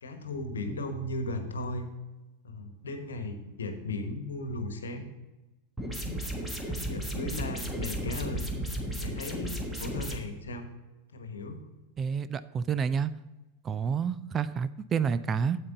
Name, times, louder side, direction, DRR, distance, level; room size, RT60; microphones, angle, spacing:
voice 1, 0.0-1.9 2.4-5.1 6.0-6.1 6.6-8.5 9.0-10.6 11.1-11.7, left 2 dB, 70° left, 7 dB, 1.2 m, -36 dB
sound 1, 5.8-10.2, right 1 dB, 5° right, 1.4 m, -34 dB
voice 2, 12.0-13.1 13.6-15.6, right 6 dB, 25° right, 14 dB, 0.3 m, -29 dB
8.7 x 8.2 x 3.9 m, 1.1 s
figure-of-eight pair, 90°, 0 cm